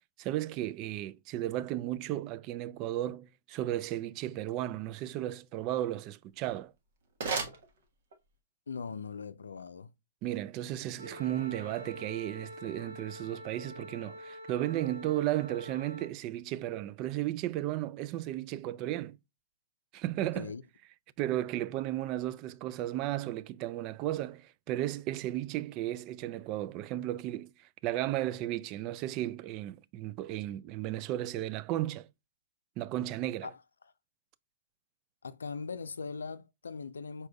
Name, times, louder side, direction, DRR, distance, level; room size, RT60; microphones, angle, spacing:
voice 1, 0.2-6.7 10.2-19.2 19.9-20.5 21.2-32.1 32.8-33.5, right 14 dB, 35° right, 0.3 m, -34 dB
sound 1, 6.3-8.4, right 4 dB, 60° right, 1.2 m, -38 dB
voice 2, 8.7-9.9 20.3-20.6 33.4-33.6 35.2-37.3, left 5 dB, 85° left, 0.5 m, -40 dB
Wind instrument woodwind instrument, 11.0-16.1, equal, 90° right, 0.7 m, -46 dB
5.0 x 4.2 x 2.3 m
hypercardioid pair, 125°, 0 cm